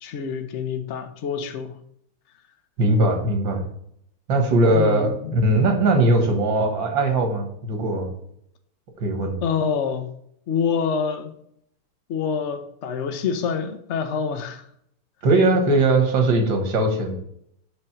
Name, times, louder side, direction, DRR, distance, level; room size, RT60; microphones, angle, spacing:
voice 1, 0.0-1.7 4.7-5.4 9.4-10.1 10.5-11.3 12.1-14.7, left 6 dB, 75° left, 0.6 m, -26 dB
voice 2, 2.8-3.6 4.3-8.1 9.0-9.4 15.2-17.2, right 2 dB, 65° right, 2.2 m, -20 dB
5.6 x 5.3 x 5.9 m
omnidirectional pair, 2.3 m